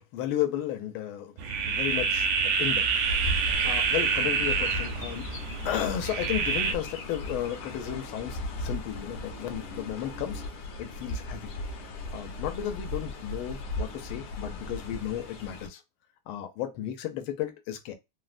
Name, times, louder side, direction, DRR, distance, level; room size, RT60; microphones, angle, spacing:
voice 1, 0.0-1.3 1.6-5.2 5.6-10.4 10.8-11.5 12.1-15.8 16.3-17.9, left 11 dB, 85° left, 1.4 m, -34 dB
sound 1, 1.4-6.7, right 5 dB, 80° right, 1.4 m, -27 dB
Chirp tweet, 3.0-15.7, left 1 dB, 65° left, 1.1 m, -37 dB
3.7 x 2.1 x 2.4 m
omnidirectional pair, 2.3 m